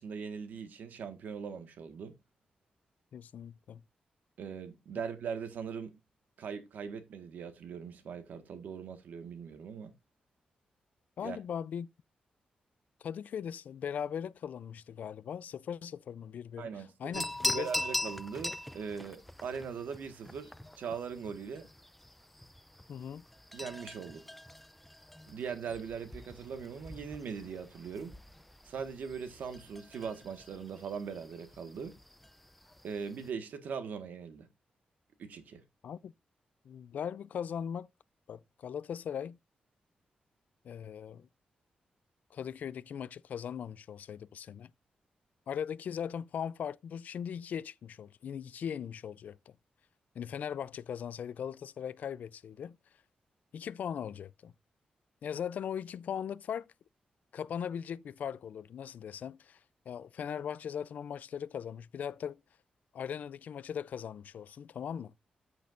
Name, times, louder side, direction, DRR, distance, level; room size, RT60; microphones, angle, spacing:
voice 1, 0.0-2.1 4.4-5.9 6.4-9.9 11.2-11.4 16.6-21.7 23.5-24.2 25.3-28.2 28.6-32.0 32.8-34.5 35.2-35.6, right 6 dB, 90° right, 1.5 m, -40 dB
voice 2, 3.1-3.8 11.2-11.9 13.0-16.7 17.0-17.7 22.9-23.2 35.8-36.1 36.7-37.9 38.3-39.4 40.6-41.3 42.3-44.7 45.5-49.4 50.2-52.8 53.5-54.5 55.2-56.7 57.3-59.6 59.9-62.4 62.9-65.1, left 8 dB, 70° left, 0.4 m, -39 dB
sound 1, 17.1-33.3, left 1 dB, 5° left, 0.4 m, -42 dB
13.5 x 6.4 x 2.5 m
wide cardioid pair, 160°, 3 cm